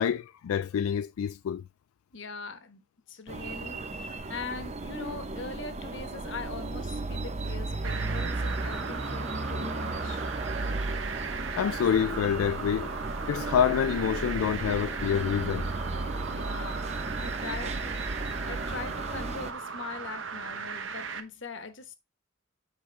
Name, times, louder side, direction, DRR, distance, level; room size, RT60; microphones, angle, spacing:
voice 1, 0.0-1.6 11.6-12.9 13.3-15.7, left 8 dB, 85° left, 0.3 m, -27 dB
voice 2, 2.1-2.8 3.1-10.2 16.3-16.8 17.2-17.9 18.2-22.0, left 4 dB, 60° left, 1.1 m, -41 dB
sound 1, 3.3-19.5, right 2 dB, 30° right, 0.6 m, -35 dB
sound 2, 7.8-21.2, right 5 dB, 65° right, 0.9 m, -38 dB
7.8 x 4.9 x 3.3 m
head